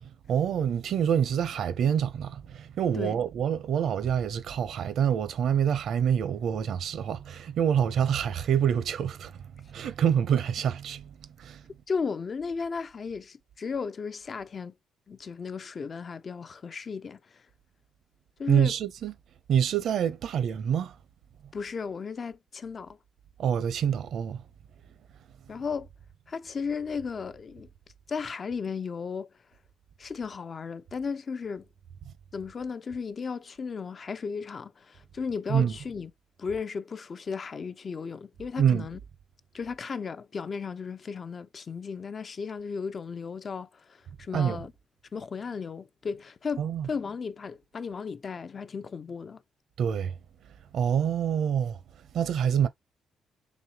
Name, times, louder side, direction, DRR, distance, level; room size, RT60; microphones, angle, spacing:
voice 1, 0.0-11.1 11.4-11.6 18.5-19.1 19.5-20.9 23.4-24.4 35.5-35.8 38.6-38.9 44.3-44.6 46.6-46.9 49.8-50.1 50.7-51.8 52.1-52.7, right 8 dB, 70° right, 0.7 m, -26 dB
voice 2, 11.9-14.7 15.1-17.4 18.4-18.8 21.5-23.0 25.5-25.9 26.3-27.7 28.1-29.3 30.0-31.7 32.3-36.1 36.4-39.0 39.5-44.7 45.1-49.4, left 5 dB, 40° left, 0.4 m, -35 dB
4.1 x 3.2 x 2.8 m
cardioid pair, 90°, 0 cm